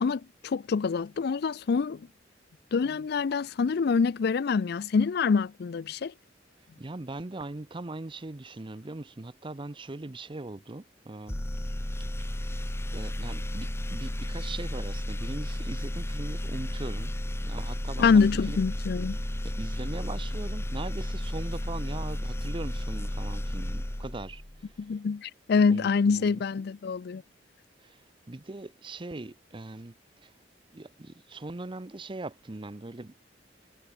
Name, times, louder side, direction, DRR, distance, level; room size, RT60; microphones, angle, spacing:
voice 1, 0.0-2.0 2.7-6.1 18.0-19.2 24.8-27.2, left 5 dB, 60° left, 0.4 m, -25 dB
voice 2, 6.8-11.4 12.3-17.1 17.4-18.6 19.4-24.9 25.7-26.4 27.8-30.3 30.7-33.1, right 2 dB, 30° right, 0.7 m, -40 dB
sound 1, 11.3-24.7, left 1 dB, 15° left, 0.8 m, -33 dB
head